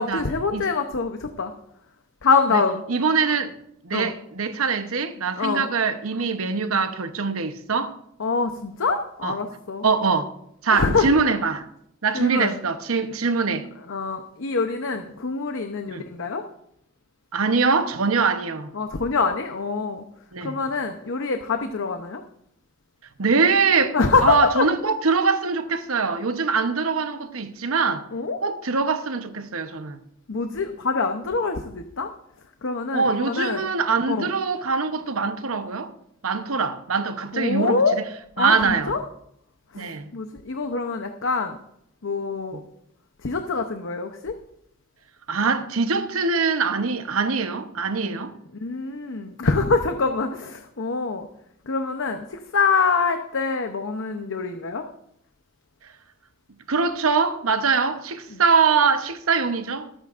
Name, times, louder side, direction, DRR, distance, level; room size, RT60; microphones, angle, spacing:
voice 1, 0.0-1.5 2.2-2.8 3.9-4.1 5.4-5.7 8.2-9.9 10.7-11.1 12.1-12.5 13.9-16.4 18.7-20.0 20.4-22.2 23.9-24.7 28.1-28.4 30.3-32.1 32.6-33.7 34.1-34.3 37.3-38.0 38.4-39.0 39.7-41.6 42.0-42.6 43.2-44.4 48.0-48.2 48.6-51.3 51.7-54.8 58.3-58.4, left 4 dB, 65° left, 0.8 m, -25 dB
voice 2, 2.9-3.5 3.8-8.0 9.2-9.4 9.8-10.3 10.6-11.6 12.0-13.7 15.9-16.0 17.3-18.7 20.3-20.6 23.2-24.0 24.2-28.1 28.4-30.0 32.9-35.9 36.2-37.8 38.4-38.9 39.7-40.1 42.5-42.6 45.3-48.3 56.7-59.9, right 4 dB, 90° right, 0.9 m, -23 dB
23.0 x 8.9 x 2.5 m
head